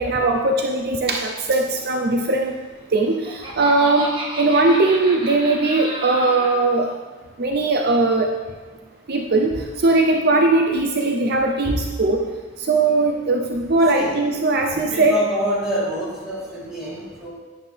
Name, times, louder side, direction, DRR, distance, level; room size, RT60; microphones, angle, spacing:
voice 1, 0.0-2.6 2.9-6.9 7.4-8.3 9.1-12.2 12.6-15.1, right 2 dB, 55° right, 3 dB, 0.7 m, -19 dB
Laughter, 2.8-6.6, right 2 dB, 25° right, 1.6 m, -32 dB
voice 2, 14.6-17.3, equal, 5° right, -9 dB, 3.6 m, -26 dB
10.5 x 10.0 x 3.4 m, 1.3 s
head